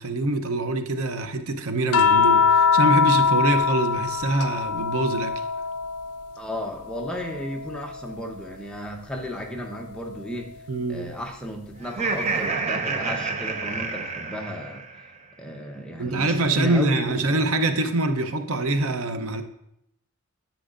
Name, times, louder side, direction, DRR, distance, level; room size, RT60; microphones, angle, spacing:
voice 1, 0.0-5.4 10.7-11.1 16.0-19.4, right 2 dB, 75° right, 0.7 m, -24 dB
sound 1, 1.9-6.4 6.8-8.4 9.9-10.1, left 6 dB, 85° left, 0.4 m, -23 dB
voice 2, 6.4-10.6 10.9-14.8 15.4-17.4, equal, 5° left, 0.8 m, -34 dB
Laughter, 11.8-15.1, right 4 dB, 30° right, 0.6 m, -28 dB
10.0 x 8.3 x 2.5 m
head